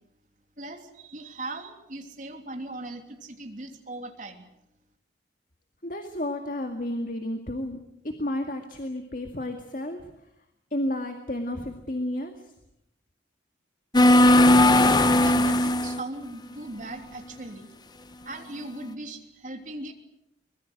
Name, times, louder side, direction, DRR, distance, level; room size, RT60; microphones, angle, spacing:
voice 1, 0.6-4.4 15.1-17.7 18.2-19.9, right 2 dB, 45° right, 4 dB, 3.1 m, -39 dB
voice 2, 5.8-7.8 8.0-10.0 10.7-12.4, left 1 dB, 45° left, 5 dB, 2.1 m, -31 dB
sound 1, 13.9-16.0, left 1 dB, 20° left, 0.9 m, -17 dB
24.5 x 22.0 x 8.0 m, 0.81 s
head